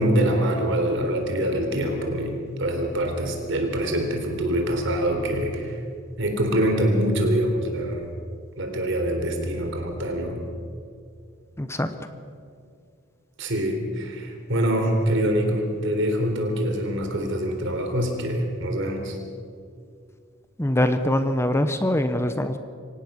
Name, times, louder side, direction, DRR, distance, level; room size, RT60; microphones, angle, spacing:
voice 1, 0.0-5.8 6.2-8.1 8.6-10.4 13.4-19.2, right 1 dB, 65° right, 4 dB, 3.8 m, -24 dB
voice 2, 11.6-11.9 20.6-22.6, left 1 dB, 15° left, 9 dB, 0.9 m, -23 dB
24.5 x 17.5 x 6.4 m, 2.3 s
head